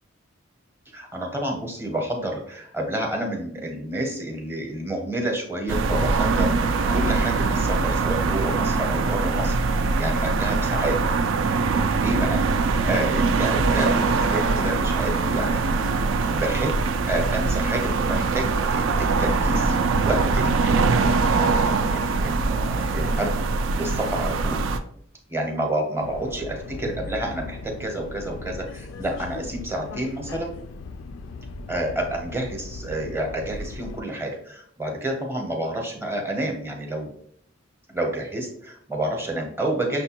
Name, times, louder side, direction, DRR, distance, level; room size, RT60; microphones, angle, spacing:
voice 1, 0.9-11.0 11.9-15.9 16.2-16.7 17.1-19.8 20.0-21.5 21.9-23.3 23.7-24.6 25.3-30.5 31.7-37.1 37.9-40.0, right 1 dB, 10° right, 1 dB, 0.7 m, -29 dB
sound 1, 5.7-24.8, right 4 dB, 70° right, 0.3 m, -22 dB
Subway metro underground, 26.0-34.0, left 3 dB, 70° left, 0.3 m, -38 dB
6.1 x 2.2 x 2.8 m, 0.65 s
head